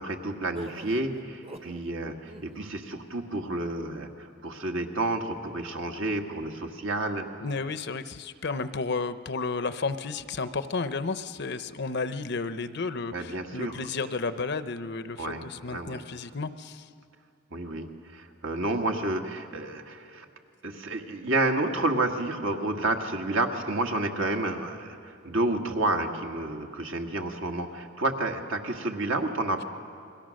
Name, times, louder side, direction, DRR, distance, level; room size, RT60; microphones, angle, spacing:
voice 1, 0.0-7.3 13.1-13.8 15.2-16.0 17.5-20.3 20.6-29.6, right 2 dB, 65° right, 3 dB, 1.8 m, -30 dB
sound 1, 0.5-1.9 2.2-2.7, right 1 dB, 30° right, 1.0 m, -44 dB
voice 2, 7.4-16.9, left 4 dB, 55° left, 12 dB, 0.7 m, -32 dB
29.5 x 22.0 x 6.5 m, 2.4 s
head